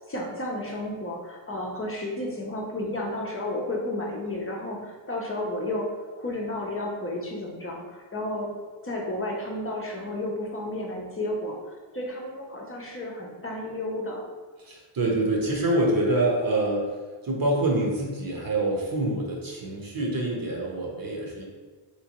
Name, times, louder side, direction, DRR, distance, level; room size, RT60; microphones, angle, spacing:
voice 1, 0.1-8.5 8.8-14.3, left 1 dB, 30° left, -2 dB, 0.6 m, -32 dB
voice 2, 14.6-16.9 17.2-21.4, right 1 dB, 45° right, -2 dB, 0.9 m, -26 dB
3.3 x 3.0 x 3.0 m, 1.4 s
cardioid pair, 75°, 47 cm